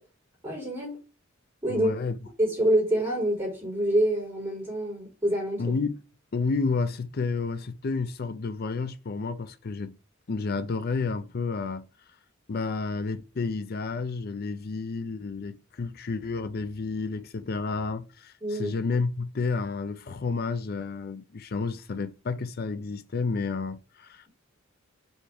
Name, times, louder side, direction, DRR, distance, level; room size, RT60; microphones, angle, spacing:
voice 1, 0.4-1.0 1.6-1.9 2.4-5.7 18.4-18.7, right 1 dB, 15° right, 3.5 m, -26 dB
voice 2, 1.7-2.2 5.6-6.0 6.3-9.9 10.3-11.9 12.5-24.3, left 4 dB, 50° left, 0.5 m, -30 dB
5.4 x 4.5 x 5.0 m
head